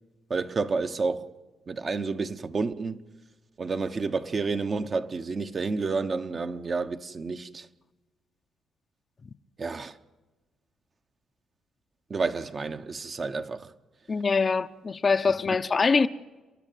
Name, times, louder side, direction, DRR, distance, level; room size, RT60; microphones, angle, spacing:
voice 1, 0.3-1.3 1.7-3.0 3.6-7.7 9.6-10.0 12.1-13.7, right 4 dB, 40° right, 1.1 m, -30 dB
voice 2, 14.1-16.1, left 4 dB, 35° left, 0.8 m, -23 dB
29.5 x 10.5 x 9.2 m
cardioid pair, 90°, 0 cm